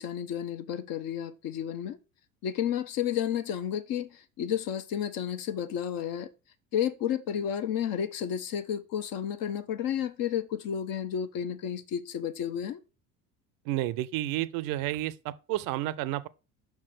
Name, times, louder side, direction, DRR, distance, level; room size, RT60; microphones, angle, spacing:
voice 1, 0.0-2.0 2.4-6.3 6.7-12.8, left 9 dB, 50° left, 0.9 m, -31 dB
voice 2, 13.7-16.3, right 15 dB, 50° right, 0.6 m, -31 dB
5.8 x 4.5 x 5.8 m
hypercardioid pair, 65°, 46 cm